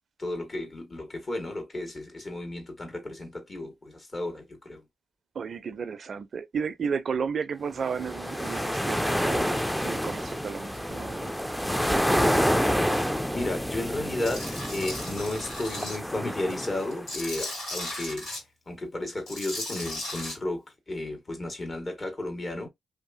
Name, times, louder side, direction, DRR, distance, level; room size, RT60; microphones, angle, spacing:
voice 1, 0.2-4.8 13.3-18.3 18.7-22.7, left 1 dB, 40° left, 1.5 m, -33 dB
voice 2, 5.3-9.6 9.8-11.4, right 6 dB, 60° right, 0.4 m, -33 dB
sound 1, 7.9-17.1, equal, 5° left, 0.4 m, -28 dB
Tools, 14.2-16.0 16.4-18.4 19.2-20.3, left 1 dB, 85° left, 1.6 m, -36 dB
2.8 x 2.4 x 2.6 m
supercardioid pair, 50°, 0 cm